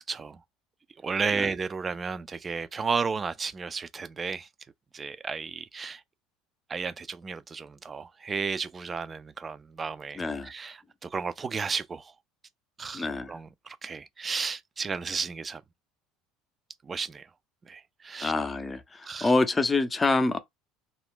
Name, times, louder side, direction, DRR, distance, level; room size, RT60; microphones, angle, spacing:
voice 1, 0.1-0.4 1.0-4.5 4.9-6.0 6.7-12.1 12.8-15.6 16.8-17.3 17.6-18.3 19.0-19.3, right 5 dB, 30° right, 0.4 m, -33 dB
voice 2, 10.2-10.5 12.9-13.4 18.2-20.4, left 3 dB, 20° left, 0.6 m, -26 dB
2.4 x 2.1 x 3.6 m
hypercardioid pair, 70°, 0 cm